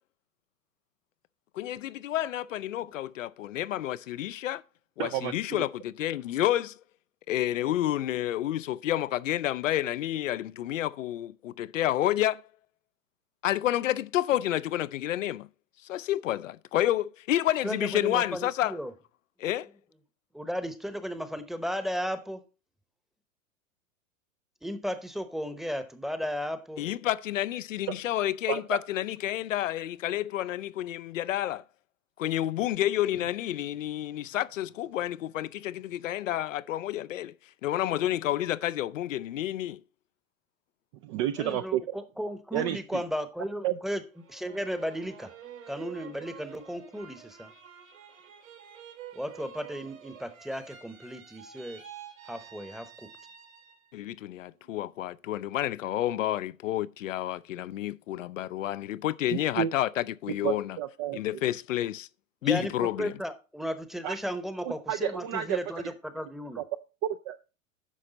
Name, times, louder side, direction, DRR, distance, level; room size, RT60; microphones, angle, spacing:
voice 1, 1.5-4.6 5.0-6.8 7.3-12.4 13.4-15.5 15.9-18.8 19.4-19.7 26.8-31.6 32.2-37.3 37.6-39.8 53.9-60.8 61.1-62.1 62.4-63.1, left 13 dB, 65° left, 0.5 m, -30 dB
voice 2, 5.0-5.3 28.5-28.8 41.0-42.0 42.5-43.0 43.6-43.7 59.3-59.7 60.3-61.2 64.0-64.2 64.7-65.6 66.6-66.7 67.0-67.4, right 11 dB, 25° right, 0.3 m, -30 dB
voice 3, 17.6-18.9 20.3-22.4 24.6-26.8 41.4-44.0 44.3-45.3 45.7-47.5 49.1-51.8 52.3-53.1 62.4-66.6, equal, ahead, 0.9 m, -35 dB
sound 1, 44.1-54.0 54.4-55.1, right 9 dB, 75° right, 2.9 m, -49 dB
10.0 x 6.6 x 3.9 m
figure-of-eight pair, 100°, 41 cm